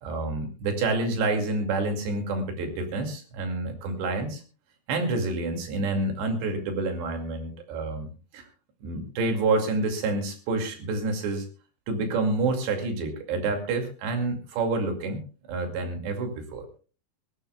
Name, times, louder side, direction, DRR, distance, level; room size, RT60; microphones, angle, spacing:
voice 1, 0.0-4.4 4.9-8.4 8.8-11.5 11.9-16.6, right 3 dB, 85° right, 4 dB, 4.6 m, -28 dB
22.0 x 16.0 x 2.3 m, 0.36 s
omnidirectional pair, 4.8 m